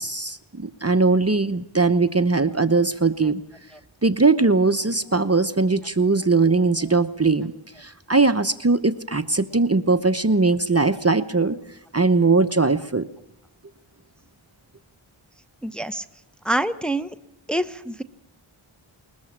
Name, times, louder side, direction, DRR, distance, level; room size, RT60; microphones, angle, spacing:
voice 1, 0.0-3.4 4.0-7.5 7.8-11.6 11.9-13.1, right 3 dB, 30° right, 11 dB, 0.9 m, -20 dB
voice 2, 15.6-16.0 16.4-17.1 17.5-18.0, right 1 dB, ahead, 9 dB, 1.0 m, -25 dB
21.0 x 21.0 x 7.4 m, 0.84 s
wide cardioid pair, 45°, 48 cm